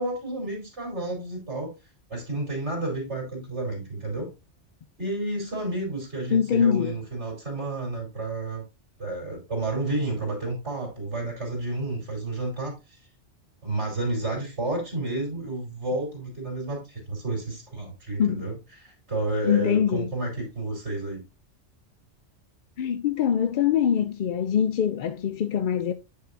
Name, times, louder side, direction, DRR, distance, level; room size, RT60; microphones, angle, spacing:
voice 1, 0.0-1.7 2.1-4.3 5.0-8.7 9.0-13.0 13.6-21.2, right 2 dB, 70° right, 3.7 m, -31 dB
voice 2, 6.3-7.0 18.2-18.4 19.4-20.1 22.8-25.9, left 8 dB, 60° left, 0.6 m, -23 dB
10.0 x 5.7 x 2.5 m
omnidirectional pair, 1.2 m